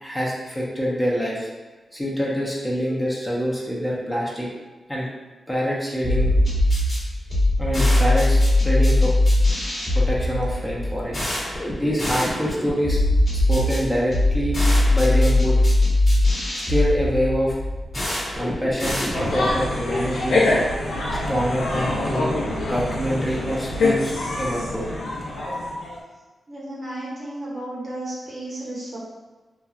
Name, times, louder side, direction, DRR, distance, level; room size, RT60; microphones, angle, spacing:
voice 1, 0.0-1.5 1.9-4.5 4.9-5.1 5.5-6.4 7.6-8.4 8.6-9.1 9.9-11.2 11.7-13.0 13.3-14.6 14.9-15.6 16.5-17.6 18.3-20.4 21.3-22.4 22.6-24.8, equal, 15° left, -5 dB, 0.6 m, -25 dB
sound 1, 6.0-19.6, left 1 dB, 40° left, 1.1 m, -21 dB
sound 2, 19.1-26.0, left 2 dB, 85° left, 0.6 m, -25 dB
voice 2, 26.5-29.0, right 1 dB, 55° right, -6 dB, 1.0 m, -33 dB
2.9 x 2.3 x 2.3 m, 1.2 s
cardioid pair, 70°, 0 cm